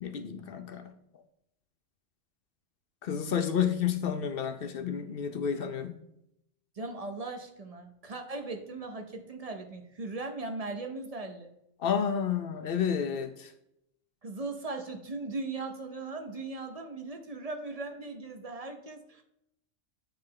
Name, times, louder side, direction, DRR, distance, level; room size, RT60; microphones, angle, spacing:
voice 1, 0.0-0.9 3.0-6.0 11.8-13.5, left 8 dB, 60° left, 8 dB, 0.7 m, -30 dB
voice 2, 6.8-11.5 14.2-19.2, right 3 dB, 35° right, 5 dB, 0.7 m, -38 dB
8.5 x 3.2 x 3.7 m, 0.78 s
omnidirectional pair, 1.3 m